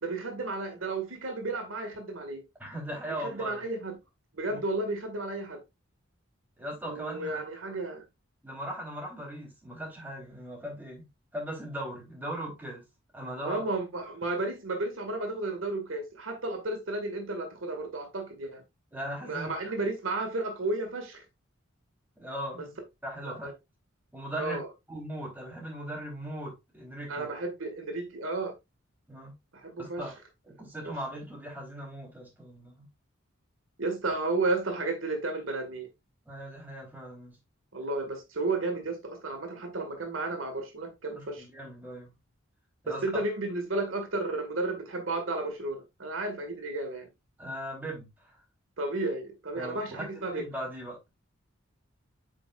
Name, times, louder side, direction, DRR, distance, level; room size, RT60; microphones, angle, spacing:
voice 1, 0.0-2.4 3.2-4.0 4.3-5.6 6.8-8.1 13.4-18.6 19.2-21.2 23.3-23.5 24.3-24.7 27.1-28.5 29.6-30.1 30.6-30.9 33.8-35.9 37.7-41.5 43.0-47.1 48.8-50.5, right 2 dB, 75° right, 1.9 m, -33 dB
voice 2, 2.6-3.7 4.5-4.6 6.6-7.3 8.4-11.1 11.3-12.8 13.1-13.6 18.9-19.5 22.2-22.7 23.0-23.5 24.1-24.6 24.9-27.3 29.1-29.3 29.8-30.1 30.5-32.9 36.2-37.4 41.1-42.1 42.8-43.2 47.4-48.4 49.6-51.1, right 1 dB, 10° right, 3.9 m, -39 dB
8.4 x 6.3 x 2.5 m
head